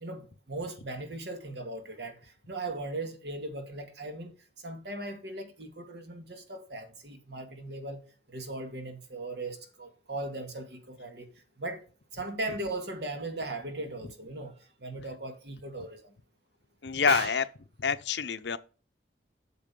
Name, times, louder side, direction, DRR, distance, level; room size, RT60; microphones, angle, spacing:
voice 1, 0.0-4.3 4.6-8.0 8.3-11.3 11.6-11.8 12.1-16.1 17.1-17.4, right 2 dB, 70° right, 1.9 m, -38 dB
voice 2, 16.8-17.4 17.8-18.6, left 6 dB, 75° left, 0.7 m, -27 dB
8.6 x 6.7 x 5.3 m
head